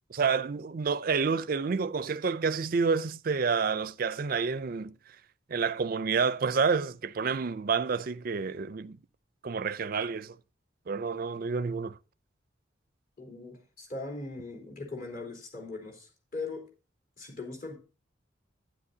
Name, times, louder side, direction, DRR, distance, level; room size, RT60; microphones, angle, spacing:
voice 1, 0.1-4.9 5.5-9.0 9.4-10.4 10.9-12.0, right 5 dB, 50° right, 0.4 m, -29 dB
voice 2, 13.2-16.7 17.2-17.8, left 3 dB, 45° left, 3.7 m, -40 dB
12.0 x 10.5 x 2.7 m
head